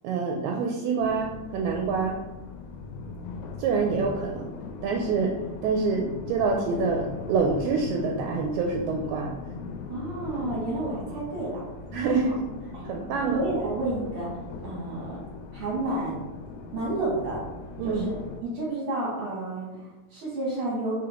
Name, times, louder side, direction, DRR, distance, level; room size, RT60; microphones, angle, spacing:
voice 1, 0.0-2.2 3.6-4.5 4.8-5.4 5.6-9.4 11.9-12.5 12.8-13.4 17.8-18.1, right 4 dB, 80° right, 1 dB, 1.8 m, -26 dB
sound 1, 1.0-18.4, left 4 dB, 80° left, 1.9 m, -40 dB
voice 2, 9.9-11.6 12.0-12.3 12.7-12.9 13.2-14.3 14.6-15.2 15.5-16.2 16.7-17.4 17.8-18.1 18.4-21.1, right 2 dB, 65° right, -5 dB, 1.4 m, -30 dB
4.9 x 3.6 x 2.9 m, 1.1 s
omnidirectional pair, 3.6 m